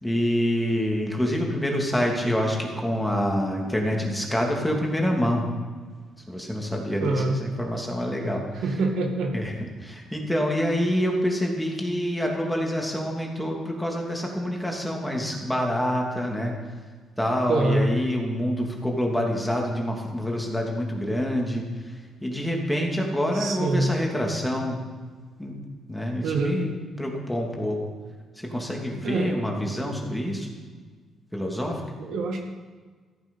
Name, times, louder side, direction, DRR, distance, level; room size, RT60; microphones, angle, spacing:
voice 1, 0.0-5.5 6.3-8.4 9.3-9.5 9.8-16.5 17.2-21.6 22.2-24.8 25.4-25.5 25.9-26.7 27.0-27.8 28.4-30.5 31.3-31.8, equal, 5° left, 0 dB, 2.7 m, -26 dB
voice 2, 7.0-7.4 8.6-9.4 17.5-17.9 23.3-23.9 26.2-26.6 29.0-29.3 32.0-32.4, right 2 dB, 80° right, 2 dB, 2.0 m, -25 dB
14.5 x 9.2 x 5.5 m, 1.5 s
cardioid pair, 90°, 0 cm